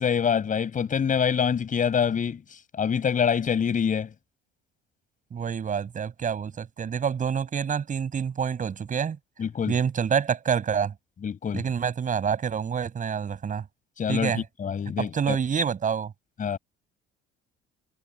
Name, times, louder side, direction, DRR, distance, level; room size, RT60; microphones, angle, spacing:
voice 1, 0.0-2.4 2.8-4.1 9.4-9.8 11.2-11.6 14.0-14.3 14.6-15.4 16.4-16.6, left 7 dB, 40° left, 6.1 m, -25 dB
voice 2, 5.3-9.2 9.7-10.9 11.5-13.6 14.1-14.4 15.0-16.1, right 7 dB, 40° right, 7.2 m, -27 dB
cardioid pair, 95°, 20 cm